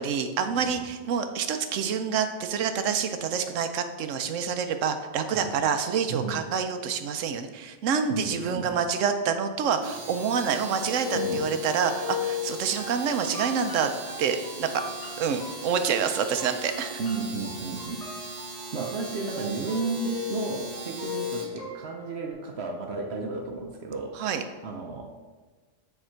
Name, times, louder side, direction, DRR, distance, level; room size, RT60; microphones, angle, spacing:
voice 1, 0.0-13.9 14.2-14.8 15.2-17.0 24.2-24.4, right 6 dB, 90° right, 8 dB, 1.0 m, -27 dB
voice 2, 8.1-8.7 11.1-11.5 17.0-18.0 18.7-25.3, right 3 dB, 65° right, 3 dB, 0.9 m, -33 dB
Domestic sounds home sounds, 9.7-21.6, right 2 dB, 35° right, 1.2 m, -40 dB
sound 1, 10.7-22.3, left 6 dB, 30° left, 1.8 m, -37 dB
9.0 x 3.6 x 4.5 m, 1.3 s
omnidirectional pair, 1.3 m